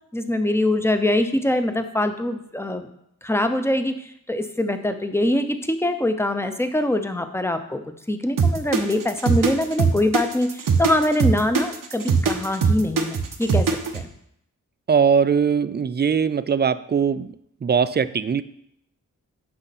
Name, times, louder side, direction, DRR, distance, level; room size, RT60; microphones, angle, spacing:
voice 1, 0.1-2.9 3.2-3.9 4.3-7.8 8.1-10.5 10.8-13.7 13.9-14.1, left 1 dB, 10° left, 8 dB, 0.8 m, -23 dB
sound 1, 8.4-14.0, right 5 dB, 80° right, 0.9 m, -21 dB
voice 2, 14.9-17.3 17.6-18.4, right 6 dB, 30° right, 15 dB, 0.4 m, -20 dB
8.8 x 5.6 x 4.2 m, 0.75 s
cardioid pair, 60°, 32 cm